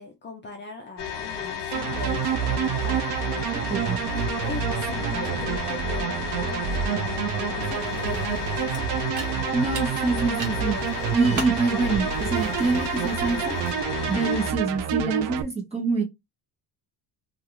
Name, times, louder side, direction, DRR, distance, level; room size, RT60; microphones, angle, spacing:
voice 1, 0.0-3.5 4.1-9.2, left 3 dB, 30° left, 0.4 m, -40 dB
sound 1, 1.0-14.5, left 7 dB, 75° left, 0.9 m, -33 dB
sound 2, 1.7-15.4, right 10 dB, 85° right, 0.5 m, -28 dB
sound 3, 7.7-14.3, right 2 dB, 50° right, 1.2 m, -39 dB
voice 2, 9.5-10.8 11.1-13.6 14.1-16.0, right 3 dB, 15° right, 0.8 m, -26 dB
2.4 x 2.3 x 2.9 m
cardioid pair, 145°, 40 cm